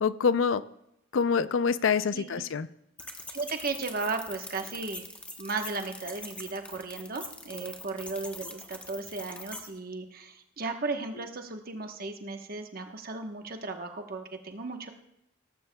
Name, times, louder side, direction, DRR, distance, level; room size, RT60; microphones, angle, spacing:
voice 1, 0.0-0.6 1.1-2.7, left 6 dB, 70° left, 15 dB, 0.4 m, -25 dB
sound 1, 3.0-9.7, left 2 dB, 5° left, 1.0 m, -43 dB
voice 2, 3.3-5.0 5.4-14.9, right 3 dB, 45° right, 5 dB, 1.1 m, -35 dB
17.5 x 14.5 x 2.3 m, 0.78 s
head